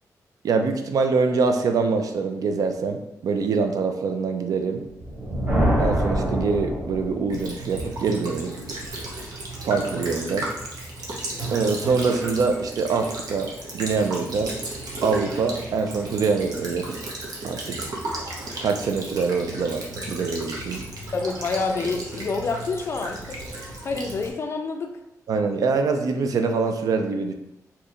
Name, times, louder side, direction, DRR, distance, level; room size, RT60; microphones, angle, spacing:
voice 1, 0.4-4.8 5.8-8.5 9.6-10.5 11.5-14.5 15.0-17.0 17.4-17.8 18.6-20.8 25.3-27.3, right 4 dB, 70° right, 6 dB, 0.4 m, -24 dB
Thunder, 4.9-7.5, equal, 25° right, 1.1 m, -24 dB
Child speech kid speaking / Bird vocalization bird call bird song / Stream, 7.3-24.3, right 2 dB, 85° right, 0.7 m, -34 dB
voice 2, 21.1-23.5 23.8-25.0, left 4 dB, 40° left, 5 dB, 0.4 m, -28 dB
2.8 x 2.4 x 4.2 m, 0.86 s
wide cardioid pair, 175°, 6 cm